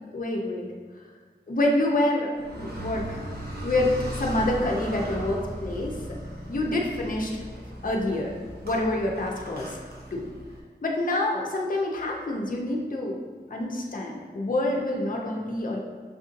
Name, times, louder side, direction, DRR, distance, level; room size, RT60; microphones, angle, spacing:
voice 1, 0.1-0.7 1.5-3.3 3.6-3.9 4.2-6.0 6.5-7.4 7.8-8.3 8.6-9.8 10.1-10.3 10.8-13.2 13.5-15.8, left 1 dB, 50° left, -1 dB, 0.6 m, -27 dB
Car, 2.3-10.6, equal, 60° right, 0.9 m, -37 dB
6.3 x 2.6 x 2.6 m, 1.5 s
wide cardioid pair, 55°, 19 cm